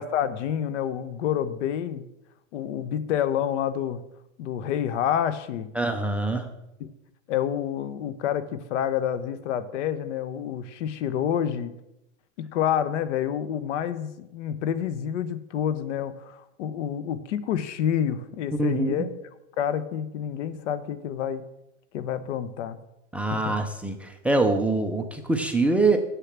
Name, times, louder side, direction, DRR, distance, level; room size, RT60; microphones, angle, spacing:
voice 1, 0.0-2.0 2.5-4.0 4.4-5.7 6.8-6.9 7.3-11.7 12.4-19.1 19.6-21.5 21.9-22.8 23.3-23.5, left 9 dB, 65° left, 14 dB, 1.0 m, -28 dB
voice 2, 5.7-6.5 18.6-19.0 23.1-26.0, right 2 dB, 5° right, 6 dB, 0.4 m, -24 dB
7.5 x 6.8 x 7.3 m, 0.90 s
supercardioid pair, 145°, 38 cm